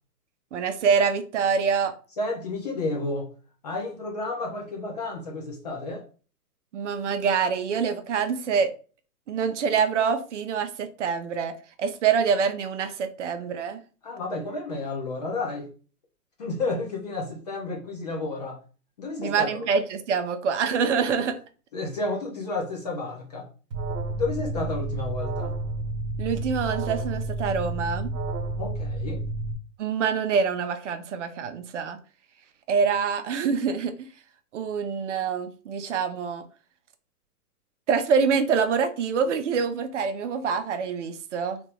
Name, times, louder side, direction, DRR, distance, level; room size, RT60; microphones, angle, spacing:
voice 1, 0.5-1.9 6.7-8.7 9.3-11.5 11.8-13.8 19.2-21.4 26.2-28.1 29.8-32.0 32.7-33.9 34.5-36.4 37.9-41.6, right 6 dB, 50° right, 9 dB, 0.5 m, -25 dB
voice 2, 2.2-3.3 3.6-6.1 14.0-15.7 16.4-18.6 19.0-19.7 21.7-23.5 24.2-25.5 28.6-29.2, left 2 dB, 30° left, 0 dB, 0.4 m, -31 dB
Alarm, 23.7-29.5, right 2 dB, 80° right, 1.1 m, -30 dB
2.9 x 2.3 x 3.2 m, 0.37 s
hypercardioid pair, 140°, 47 cm